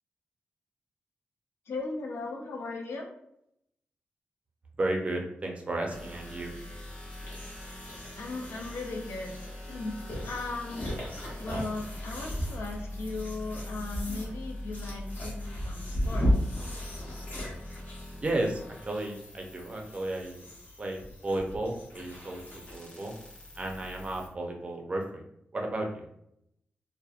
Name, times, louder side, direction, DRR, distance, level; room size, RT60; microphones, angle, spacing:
voice 1, 1.7-3.1 8.2-9.3 9.7-10.0 10.2-10.9 11.4-16.6, left 3 dB, 85° left, 1 dB, 0.5 m, -37 dB
voice 2, 4.8-6.5 18.2-20.5 20.8-23.1 23.6-25.2 25.5-26.1, right 1 dB, 30° right, 1 dB, 0.4 m, -33 dB
sound 1, 5.9-24.3, left 1 dB, 20° left, 0.6 m, -43 dB
sound 2, 7.1-22.9, equal, 50° left, 0.9 m, -36 dB
2.7 x 2.1 x 2.4 m, 0.75 s
wide cardioid pair, 145°, 4 cm